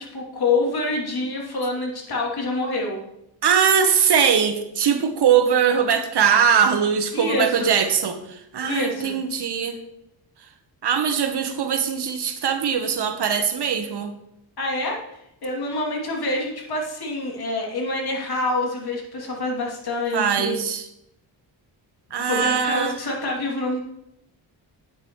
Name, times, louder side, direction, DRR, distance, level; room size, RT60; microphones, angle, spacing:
voice 1, 0.0-3.0 7.1-7.7 8.6-9.2 14.6-20.6 22.2-23.8, left 2 dB, 55° left, -1 dB, 2.8 m, -26 dB
voice 2, 3.4-9.8 10.8-14.1 20.1-20.8 22.1-23.0, right 7 dB, 60° right, 8 dB, 1.1 m, -21 dB
9.4 x 7.8 x 3.1 m, 0.83 s
cardioid pair, 85°, 46 cm